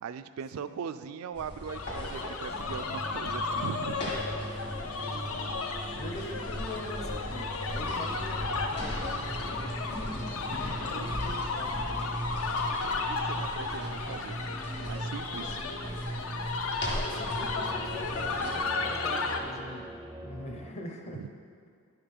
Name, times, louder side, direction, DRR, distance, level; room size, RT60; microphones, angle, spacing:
voice 1, 0.0-4.2 13.1-14.4 14.8-15.6 21.1-21.3, right 7 dB, 75° right, 12 dB, 0.3 m, -40 dB
sound 1, 1.3-18.6, left 1 dB, 50° left, 1.8 m, -41 dB
sound 2, 1.7-19.4, left 4 dB, 75° left, 0.6 m, -34 dB
sound 3, 2.7-20.7, right 1 dB, 5° right, 0.4 m, -40 dB
voice 2, 5.0-5.5 5.9-10.5 10.8-12.2 16.9-19.9 20.2-21.2, left 1 dB, 30° left, 3 dB, 0.7 m, -43 dB
9.9 x 5.3 x 4.3 m, 2.1 s
head